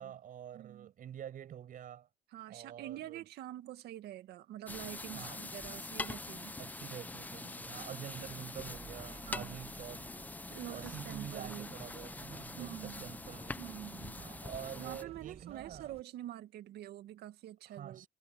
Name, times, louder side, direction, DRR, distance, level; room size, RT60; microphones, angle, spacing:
voice 1, 0.0-2.1 2.5-3.2 5.1-5.4 6.6-10.1 10.7-13.6 14.2-15.9 17.6-18.1, right 10 dB, 55° right, 6.2 m, -47 dB
voice 2, 0.5-0.9 2.3-6.6 9.3-9.6 10.5-11.7 12.6-13.1 13.6-14.2 14.8-18.1, right 13 dB, 75° right, 2.1 m, -46 dB
sound 1, 4.7-15.0, left 2 dB, 10° left, 0.4 m, -44 dB
sound 2, 8.1-16.0, right 6 dB, 35° right, 1.7 m, -55 dB
cardioid pair, 110°, 17 cm